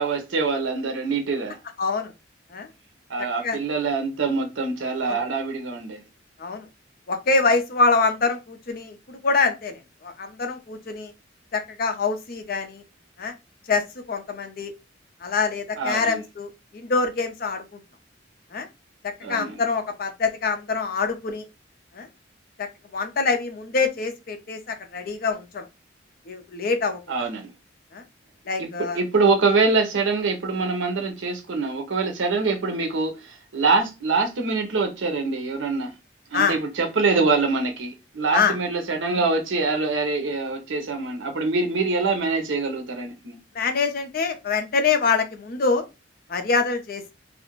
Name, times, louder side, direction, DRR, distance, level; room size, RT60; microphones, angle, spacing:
voice 1, 0.0-1.6 3.1-6.0 15.8-16.2 19.2-19.5 27.1-27.5 28.6-35.9 36.3-43.4, right 4 dB, 80° right, 0.7 m, -24 dB
voice 2, 1.8-2.1 2.5-2.7 3.2-3.6 5.0-5.2 6.4-6.7 7.1-11.1 11.5-12.8 13.2-13.3 13.7-14.7 15.2-17.6 18.5-18.7 19.0-21.4 21.9-22.1 22.6-25.7 26.3-27.3 27.9-28.0 28.5-29.0 36.3-36.6 38.3-38.6 43.5-45.8 46.3-47.1, left 4 dB, 50° left, 0.5 m, -25 dB
2.4 x 2.0 x 3.0 m
head